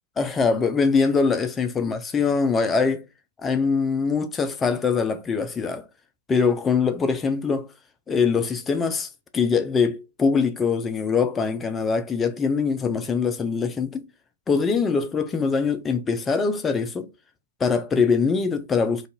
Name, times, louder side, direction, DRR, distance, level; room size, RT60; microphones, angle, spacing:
voice 1, 0.2-3.0 3.4-5.9 6.3-7.7 8.1-14.0 14.5-17.1 17.6-19.1, left 5 dB, 15° left, 0.3 m, -23 dB
2.5 x 2.3 x 2.8 m
hypercardioid pair, 120°, 0 cm